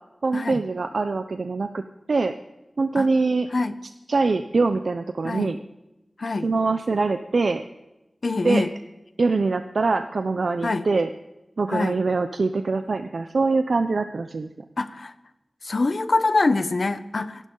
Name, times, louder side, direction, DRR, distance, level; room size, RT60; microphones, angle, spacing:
voice 1, 0.2-2.3 2.8-3.5 4.1-5.6 6.4-7.6 8.4-8.6 9.2-11.1 11.6-14.5, right 3 dB, 85° right, 9 dB, 0.6 m, -23 dB
voice 2, 8.2-8.7 10.6-10.8 11.7-12.0 14.8-15.1 15.6-17.5, left 3 dB, 70° left, 12 dB, 0.9 m, -24 dB
26.5 x 11.5 x 3.9 m, 0.98 s
wide cardioid pair, 55°, 0 cm